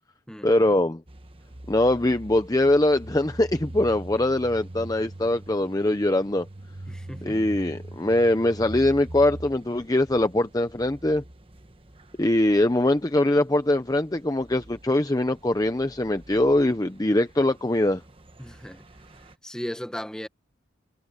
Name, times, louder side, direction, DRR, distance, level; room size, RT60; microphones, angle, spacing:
voice 1, 0.4-1.0 1.7-6.5 7.2-11.2 12.2-18.0, left 1 dB, 20° left, 0.7 m, -22 dB
sound 1, 1.1-19.4, right 1 dB, 30° right, 1.2 m, -43 dB
voice 2, 6.9-7.4 18.4-18.8 19.4-20.3, equal, 5° left, 1.4 m, -36 dB
head